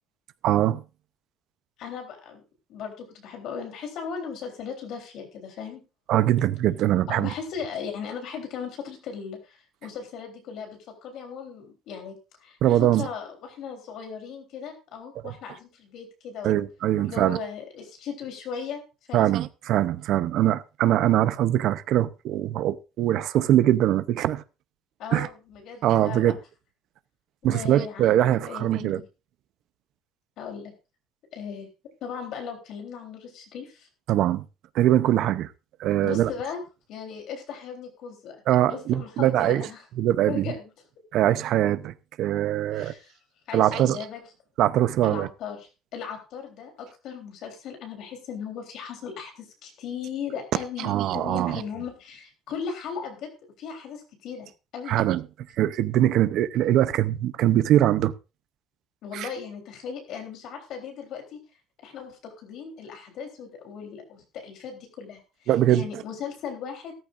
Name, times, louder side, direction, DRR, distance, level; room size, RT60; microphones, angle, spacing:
voice 1, 0.4-0.8 6.1-7.3 12.6-13.1 16.4-17.4 19.1-24.4 25.1-25.3 25.8-26.3 27.4-29.0 34.1-34.4 34.7-35.5 35.8-36.3 38.5-39.7 40.0-40.5 41.1-42.9 43.5-44.0 44.6-45.3 50.8-51.6 54.9-55.2 55.6-58.1 59.1-59.3 65.5-66.0, right 12 dB, 50° right, 0.7 m, -22 dB
voice 2, 1.8-2.4 2.7-5.8 7.1-12.2 12.4-12.6 12.9-16.6 17.0-18.8 19.1-19.3 25.0-26.4 27.4-29.0 30.4-30.7 31.3-31.7 32.0-33.9 36.0-36.6 36.9-38.4 38.7-39.8 40.3-40.7 42.7-43.2 43.5-44.2 45.0-53.3 53.6-55.0 59.0-61.4 61.8-66.9, left 6 dB, 50° left, 3.6 m, -37 dB
15.5 x 13.5 x 2.6 m
cardioid pair, 180°, 0 cm